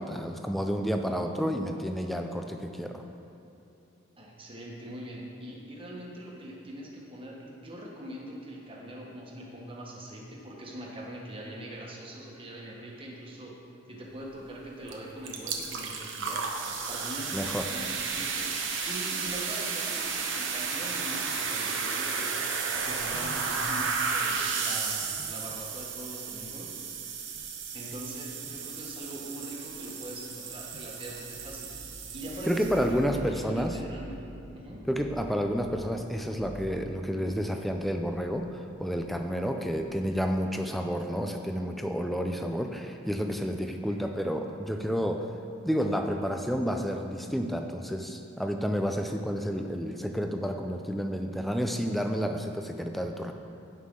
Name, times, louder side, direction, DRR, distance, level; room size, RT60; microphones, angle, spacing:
voice 1, 0.0-3.0 17.3-17.7 32.5-33.8 34.9-45.3 45.6-53.3, equal, ahead, 4 dB, 0.5 m, -30 dB
voice 2, 4.2-13.5 13.9-16.5 16.9-18.5 18.8-22.3 22.7-26.7 27.7-31.7 32.1-34.3 34.5-34.8 43.9-44.0, right 1 dB, 25° right, -3 dB, 1.4 m, -42 dB
sound 1, 14.9-15.0 15.2-33.0, right 5 dB, 70° right, 1.0 m, -33 dB
sound 2, 31.1-40.9, right 1 dB, 90° right, 1.8 m, -48 dB
16.0 x 5.6 x 3.8 m, 2.9 s
head